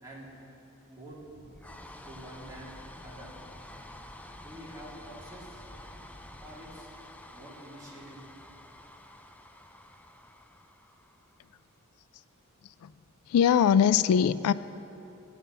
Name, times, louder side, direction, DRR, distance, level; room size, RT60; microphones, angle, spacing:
voice 1, 0.9-1.2 2.0-2.7 3.0-3.3 4.4-5.7 6.4-6.9 7.3-8.2, right 1 dB, 15° right, -7 dB, 2.7 m, -47 dB
sound 1, 1.1-11.6, left 1 dB, 5° left, 0.4 m, -49 dB
voice 2, 13.3-14.5, left 8 dB, 80° left, 15 dB, 0.3 m, -22 dB
11.5 x 9.3 x 6.9 m, 2.9 s
head